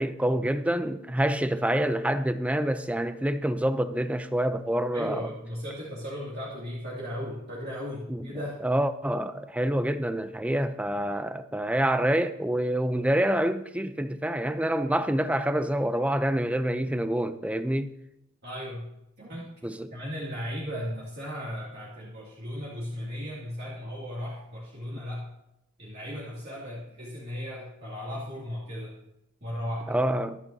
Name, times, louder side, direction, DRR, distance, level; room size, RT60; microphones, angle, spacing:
voice 1, 0.0-5.3 8.1-8.2 8.6-17.9 19.6-19.9 29.9-30.4, right 1 dB, 5° right, 0.5 m, -27 dB
voice 2, 4.9-8.5 18.4-18.9 19.2-19.5 19.9-25.3 25.8-29.0 29.4-30.0, equal, 50° right, 2.4 m, -36 dB
25.0 x 8.7 x 2.7 m
head